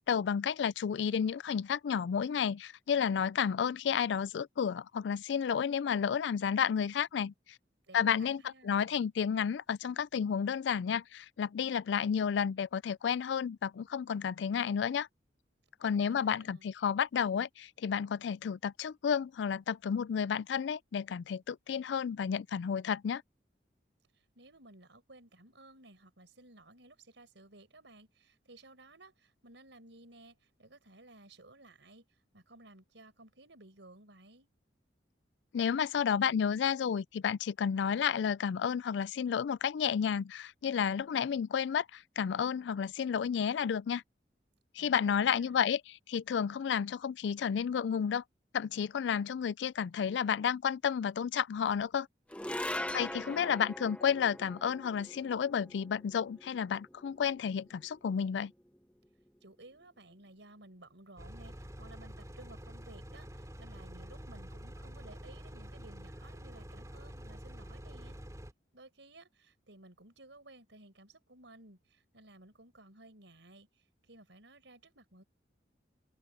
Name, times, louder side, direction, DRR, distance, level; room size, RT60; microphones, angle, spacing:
voice 1, 0.0-7.3 7.9-15.1 15.8-23.2 35.5-44.0 44.7-45.8 46.1-48.2 48.5-52.1 52.9-58.5, left 7 dB, 80° left, 0.3 m, -31 dB
voice 2, 7.9-9.0 16.0-16.7 24.1-34.5 44.8-45.6 52.7-53.6 59.4-68.2 68.7-75.2, right 2 dB, 90° right, 5.3 m, -56 dB
sound 1, 52.3-58.8, left 1 dB, 5° left, 0.8 m, -42 dB
sound 2, 61.2-68.5, equal, 20° right, 2.8 m, -47 dB
head